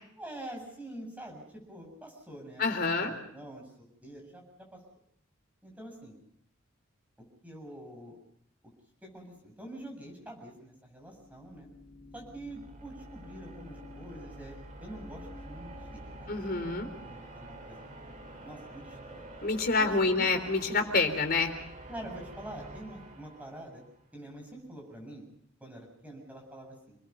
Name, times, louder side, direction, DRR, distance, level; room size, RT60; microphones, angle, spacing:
voice 1, 0.1-4.4 4.7-4.8 5.6-6.2 7.2-8.2 9.0-11.7 12.1-16.4 16.7-18.1 18.4-19.2 19.8-20.3 21.9-23.8 24.1-25.2 25.6-27.0, right 1 dB, 5° right, 1 dB, 7.7 m, -46 dB
voice 2, 2.6-3.1 16.3-16.9 19.4-21.5, left 3 dB, 50° left, 6 dB, 3.6 m, -27 dB
sound 1, 10.9-24.0, right 1 dB, 40° right, 4.8 m, -48 dB
28.5 x 21.0 x 5.5 m, 0.70 s
head